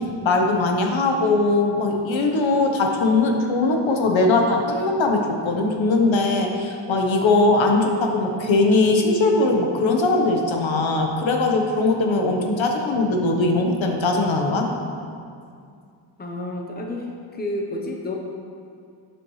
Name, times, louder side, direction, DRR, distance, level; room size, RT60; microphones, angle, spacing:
voice 1, 0.2-14.6, left 2 dB, 65° left, 2 dB, 1.3 m, -20 dB
voice 2, 16.2-18.2, left 1 dB, 20° left, 1 dB, 0.9 m, -30 dB
12.0 x 7.8 x 3.3 m, 2.3 s
wide cardioid pair, 130°, 49 cm